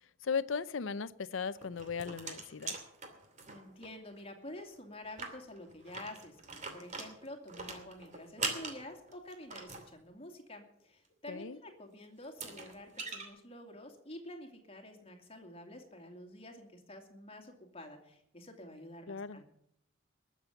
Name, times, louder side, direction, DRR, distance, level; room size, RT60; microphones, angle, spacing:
voice 1, 0.2-2.8 11.3-11.6 19.1-19.4, left 5 dB, 75° left, 17 dB, 0.6 m, -37 dB
sound 1, 1.6-3.9 4.2-4.3 4.6-4.7 5.0-9.9 11.7-11.8 12.2-13.3, right 4 dB, 35° right, 2.6 m, -42 dB
voice 2, 3.5-19.4, left 1 dB, 30° left, 4 dB, 2.4 m, -49 dB
20.5 x 7.4 x 7.1 m, 0.75 s
head